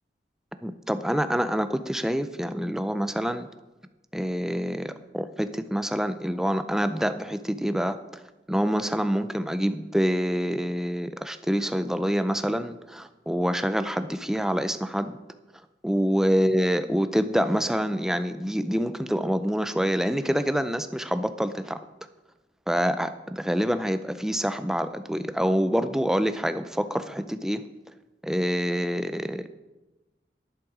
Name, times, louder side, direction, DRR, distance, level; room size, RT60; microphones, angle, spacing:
voice 1, 0.6-3.5 4.1-8.0 8.5-15.2 15.8-21.8 22.7-27.7 28.2-29.5, equal, 5° right, 11 dB, 0.4 m, -26 dB
11.0 x 9.9 x 4.9 m, 1.1 s
head